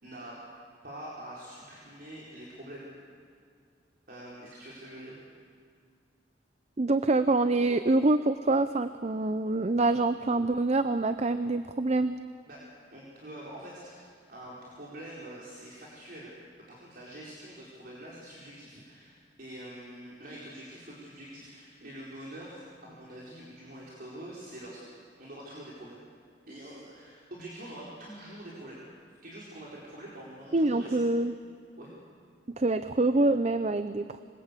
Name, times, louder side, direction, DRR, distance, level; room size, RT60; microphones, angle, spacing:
voice 1, 0.0-0.4 0.8-2.9 4.1-5.2 12.5-12.6 12.9-16.3 16.7-24.9 25.2-26.1 26.5-28.9 29.2-31.0 31.8-31.9, right 1 dB, 55° right, -5 dB, 4.6 m, -45 dB
voice 2, 6.8-12.1 30.5-31.3 32.6-34.2, right 2 dB, 40° right, 11 dB, 0.6 m, -26 dB
26.0 x 21.5 x 8.4 m, 2.3 s
head